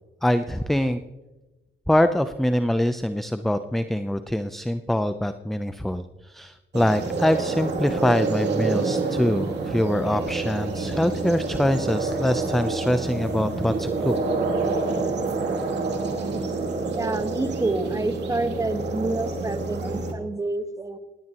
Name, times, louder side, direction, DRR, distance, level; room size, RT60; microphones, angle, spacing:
voice 1, 0.2-1.0 1.9-14.1, left 1 dB, ahead, 10 dB, 0.6 m, -24 dB
sound 1, 6.7-20.1, right 3 dB, 60° right, 2.8 m, -27 dB
voice 2, 17.0-21.0, right 2 dB, 15° right, 8 dB, 1.4 m, -28 dB
19.0 x 17.5 x 3.0 m, 1.1 s
cardioid pair, 90°, 20 cm